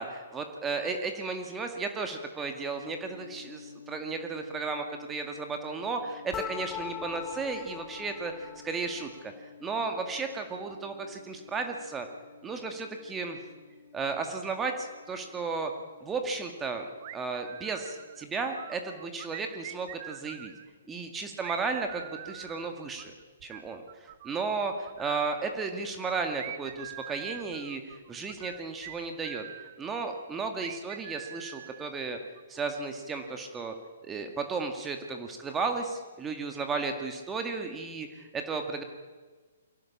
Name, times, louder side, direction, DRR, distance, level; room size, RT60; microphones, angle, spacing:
voice 1, 0.0-9.3 9.6-12.1 12.4-13.4 13.9-15.7 16.0-16.9 17.1-20.5 20.9-23.1 23.4-29.4 29.8-32.2 32.5-33.7 34.0-38.8, right 4 dB, 15° right, 5 dB, 2.0 m, -34 dB
sound 1, 2.7-22.3, left 6 dB, 70° left, 4.4 m, -53 dB
sound 2, 6.3-9.2, left 11 dB, 20° left, 0.6 m, -41 dB
sound 3, 17.0-18.3 18.6-20.7 21.4-24.5 24.9-25.6 26.4-29.8 30.6-32.4, right 14 dB, 45° right, 0.9 m, -44 dB
24.0 x 17.0 x 7.3 m, 1.4 s
figure-of-eight pair, 125°, 0 cm